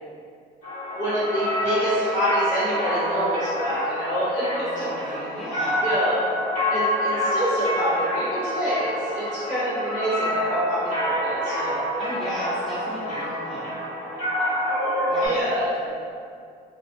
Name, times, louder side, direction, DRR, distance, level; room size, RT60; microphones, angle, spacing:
sound 1, 0.6-15.3, equal, 70° left, 1.4 m, -27 dB
voice 1, 0.9-4.8 5.8-6.2 6.7-11.8 15.2-15.7, equal, 50° left, -12 dB, 1.4 m, -27 dB
voice 2, 4.6-5.8 12.0-13.8 15.1-15.4 15.8-15.9, equal, ahead, -9 dB, 0.4 m, -35 dB
2.4 x 2.3 x 2.5 m, 2.3 s
cardioid pair, 110°, 17 cm